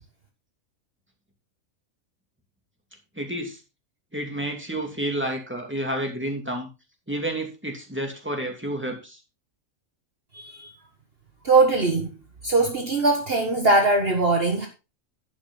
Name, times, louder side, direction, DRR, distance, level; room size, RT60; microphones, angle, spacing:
voice 1, 3.1-3.6 4.1-6.7 7.1-9.2, right 1 dB, 10° right, 2.7 m, -30 dB
voice 2, 10.3-10.7 11.4-12.1 12.4-14.7, right 3 dB, 45° right, 1.7 m, -21 dB
10.5 x 9.0 x 3.9 m
omnidirectional pair, 1.4 m